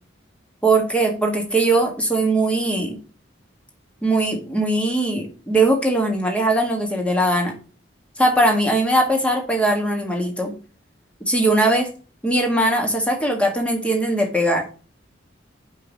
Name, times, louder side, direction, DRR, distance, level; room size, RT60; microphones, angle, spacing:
voice 1, 0.6-3.0 4.0-7.5 8.2-10.5 11.2-11.9 12.2-14.6, right 2 dB, 5° left, 2 dB, 1.7 m, -20 dB
5.5 x 5.5 x 5.1 m, 0.36 s
head